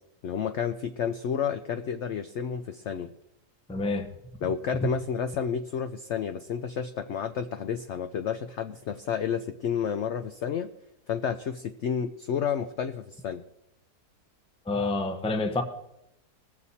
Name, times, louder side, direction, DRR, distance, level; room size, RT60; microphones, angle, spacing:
voice 1, 0.2-3.1 4.4-10.7 11.1-13.4, left 7 dB, 65° left, 9 dB, 0.7 m, -30 dB
voice 2, 3.7-4.1 14.7-15.6, left 2 dB, 5° left, 6 dB, 0.6 m, -28 dB
20.5 x 7.3 x 4.1 m, 0.85 s
omnidirectional pair, 1.7 m